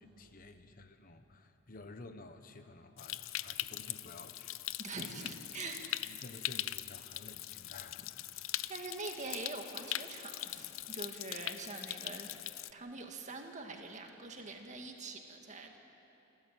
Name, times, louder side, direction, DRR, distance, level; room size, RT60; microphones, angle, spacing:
voice 1, 0.0-4.6 6.0-8.3, left 2 dB, 45° left, 8 dB, 1.0 m, -52 dB
Stream, 3.0-12.7, left 14 dB, 85° left, 0.5 m, -41 dB
voice 2, 4.8-6.1 8.7-15.8, right 3 dB, 35° right, 3 dB, 2.0 m, -44 dB
28.0 x 13.0 x 9.3 m, 3.0 s
head